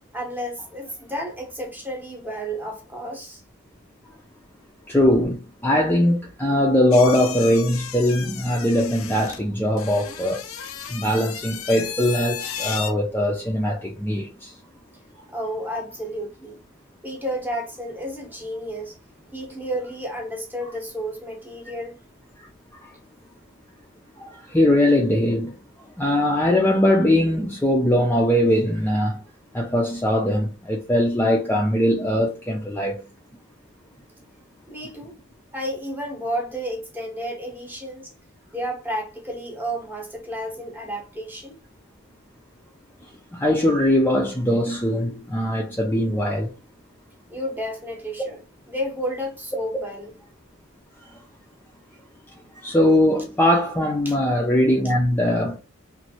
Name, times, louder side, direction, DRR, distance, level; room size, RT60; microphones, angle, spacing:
voice 1, 0.1-3.4 15.3-16.6 17.0-19.0 19.3-22.0 34.7-35.2 35.5-38.1 38.5-41.6 47.3-48.4 48.7-50.1 54.0-54.2, equal, 10° right, 0.8 m, -31 dB
voice 2, 4.9-10.4 10.9-14.5 22.4-22.5 22.7-22.9 24.2-25.5 26.0-29.2 29.5-33.0 43.3-46.5 52.6-55.6, left 1 dB, 10° left, 0.4 m, -21 dB
sound 1, 6.9-12.9, left 8 dB, 70° left, 0.5 m, -34 dB
3.1 x 2.6 x 2.7 m
head